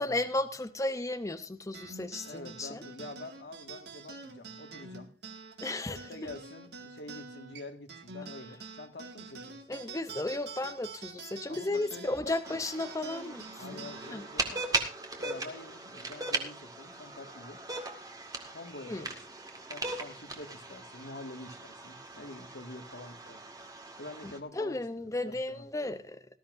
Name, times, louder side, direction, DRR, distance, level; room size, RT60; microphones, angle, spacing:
voice 1, 0.0-2.8 5.6-6.0 9.7-13.5 13.7-13.8 14.1-14.2 18.9-19.1 24.2-26.2, left 2 dB, 20° left, 9 dB, 0.7 m, -34 dB
sound 1, 1.7-16.5, right 4 dB, 70° right, 2.0 m, -47 dB
voice 2, 2.2-5.1 5.9-9.6 11.5-12.6 13.6-14.6 15.2-17.6 18.5-19.2 19.7-23.4 24.0-26.0, left 2 dB, 75° left, 5 dB, 1.9 m, -46 dB
sound 2, 12.4-24.4, right 2 dB, 20° right, 1.9 m, -39 dB
18.5 x 13.0 x 2.6 m, 0.33 s
head